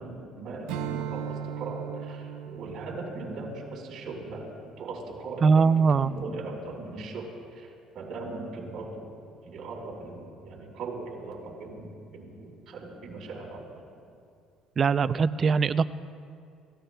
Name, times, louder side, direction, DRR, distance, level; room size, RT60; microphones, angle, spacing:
voice 1, 0.0-4.5 4.8-5.7 6.0-7.3 7.5-7.7 7.9-9.2 9.5-13.8, right 3 dB, 55° right, -2 dB, 4.5 m, -39 dB
Strum, 0.7-5.4, right 8 dB, 85° right, 0.6 m, -38 dB
voice 2, 5.4-6.1 14.8-15.8, right 5 dB, 35° right, 13 dB, 0.4 m, -21 dB
29.5 x 16.0 x 2.3 m, 2.4 s
cardioid pair, 115°, 0 cm